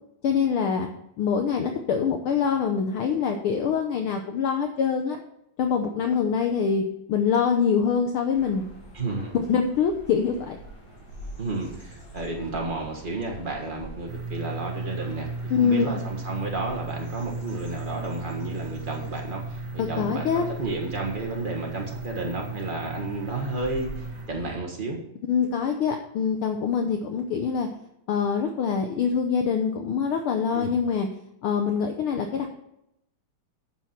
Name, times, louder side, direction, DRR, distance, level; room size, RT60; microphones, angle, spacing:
voice 1, 0.2-0.9 1.2-5.2 5.6-6.8 7.1-8.6 9.5-10.6 15.5-15.9 19.8-20.5 25.3-27.7 28.1-31.1 31.4-32.5, left 6 dB, 80° left, 5 dB, 1.2 m, -24 dB
sound 1, 8.3-24.6, right 1 dB, 40° left, 3.7 m, -45 dB
voice 2, 8.9-9.3 11.4-25.0 30.5-30.7, right 2 dB, 90° right, 0 dB, 0.4 m, -32 dB
sound 2, 14.1-24.3, right 3 dB, 70° right, 2.2 m, -36 dB
10.0 x 7.2 x 4.3 m, 0.79 s
omnidirectional pair, 3.4 m